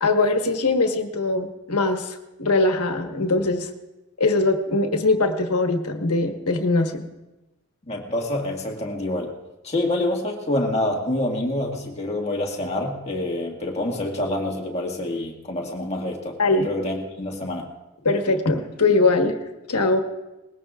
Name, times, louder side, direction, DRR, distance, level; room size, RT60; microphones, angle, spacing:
voice 1, 0.0-3.7 4.2-7.0 16.4-16.7 18.0-19.3 19.7-20.0, left 3 dB, 90° left, 5 dB, 1.4 m, -21 dB
voice 2, 7.9-9.3 9.6-16.4 16.6-17.7, left 1 dB, 30° left, 0 dB, 1.8 m, -27 dB
20.5 x 16.5 x 2.4 m, 1.0 s
head